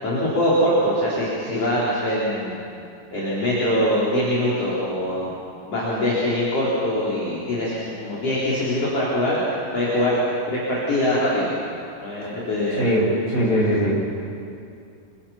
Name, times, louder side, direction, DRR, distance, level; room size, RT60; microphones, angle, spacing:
voice 1, 0.0-2.6 3.1-5.3 5.7-9.4 9.7-10.2 10.5-11.5 12.0-12.9, left 1 dB, 35° left, -7 dB, 5.0 m, -23 dB
voice 2, 12.8-14.0, equal, 15° left, -5 dB, 7.3 m, -20 dB
28.0 x 24.0 x 5.9 m, 2.5 s
omnidirectional pair, 5.2 m